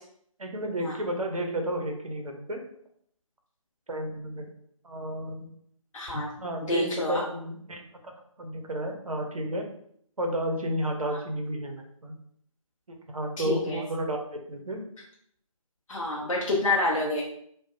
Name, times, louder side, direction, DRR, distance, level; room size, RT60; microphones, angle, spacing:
voice 1, 0.4-2.6 3.9-4.5 4.8-5.5 6.4-9.7 10.2-12.2 12.9-14.8, right 1 dB, 75° right, 3 dB, 0.6 m, -32 dB
voice 2, 5.9-6.3 6.6-7.2 11.1-11.2 13.4-13.8 15.9-17.2, left 2 dB, 70° left, -3 dB, 0.5 m, -28 dB
2.7 x 2.0 x 2.4 m, 0.67 s
figure-of-eight pair, 155°, 18 cm